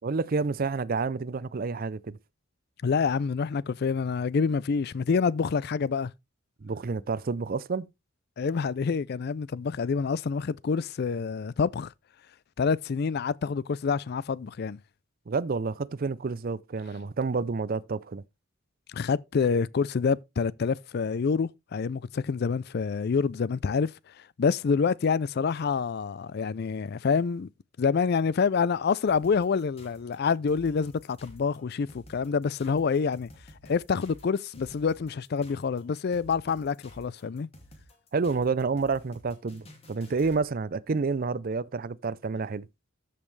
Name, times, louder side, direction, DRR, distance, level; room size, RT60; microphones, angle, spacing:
voice 1, 0.0-2.2 6.6-7.9 15.3-18.2 38.1-42.7, right 4 dB, 45° right, 0.5 m, -29 dB
voice 2, 2.8-6.1 8.4-11.9 12.6-14.8 18.9-23.9 24.4-27.5 27.8-33.3 33.6-37.5, left 5 dB, 50° left, 0.4 m, -27 dB
sound 1, 29.1-40.4, left 1 dB, 30° left, 2.2 m, -52 dB
13.5 x 5.5 x 3.2 m
head